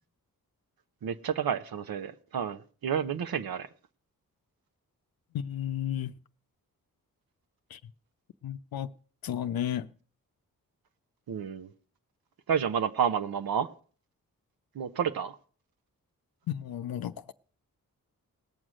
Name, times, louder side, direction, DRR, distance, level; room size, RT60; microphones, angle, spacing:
voice 1, 1.0-3.7 11.3-11.7 12.5-13.7 14.7-15.4, right 8 dB, 75° right, 0.9 m, -30 dB
voice 2, 5.3-6.1 7.7-7.8 8.4-8.9 9.2-9.9 16.5-17.3, left 10 dB, 75° left, 0.6 m, -33 dB
18.5 x 6.3 x 6.2 m
cardioid pair, 50°, 36 cm